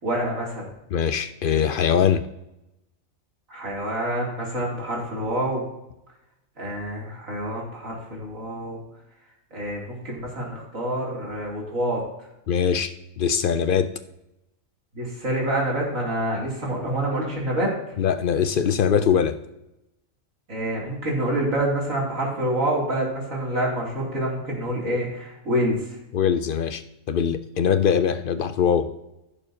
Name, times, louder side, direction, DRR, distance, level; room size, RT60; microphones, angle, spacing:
voice 1, 0.0-0.7 3.5-5.6 6.6-8.8 9.5-12.0 14.9-18.0 20.5-26.0, right 1 dB, 80° right, -4 dB, 3.4 m, -27 dB
voice 2, 0.9-2.3 12.5-13.9 18.0-19.4 26.1-26.8 27.1-28.9, left 7 dB, 60° left, 11 dB, 0.6 m, -22 dB
15.5 x 7.0 x 2.8 m, 0.90 s
omnidirectional pair, 1.4 m